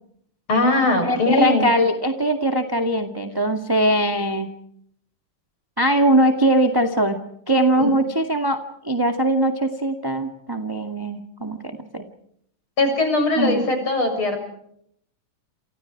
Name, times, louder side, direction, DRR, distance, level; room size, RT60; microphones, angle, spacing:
voice 1, 0.5-1.7 7.8-7.9 12.8-14.4, left 2 dB, 40° left, 6 dB, 7.5 m, -20 dB
voice 2, 1.0-4.5 5.8-7.2 7.5-12.0 13.4-13.6, right 1 dB, 10° right, 5 dB, 1.3 m, -21 dB
30.0 x 29.0 x 4.8 m, 0.71 s
omnidirectional pair, 3.7 m